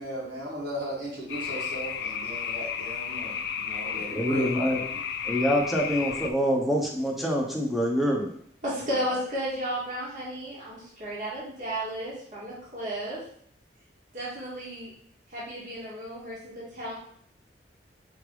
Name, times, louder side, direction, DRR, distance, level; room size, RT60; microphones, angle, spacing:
voice 1, 0.0-4.5, equal, 65° right, -6 dB, 1.8 m, -37 dB
sound 1, 1.3-6.3, left 7 dB, 65° left, 0.4 m, -33 dB
voice 2, 4.1-4.8 5.2-8.4, equal, ahead, -1 dB, 0.8 m, -26 dB
voice 3, 8.6-13.2 14.1-14.9 15.3-16.9, equal, 50° right, -7 dB, 1.6 m, -33 dB
4.8 x 3.3 x 3.2 m, 0.64 s
head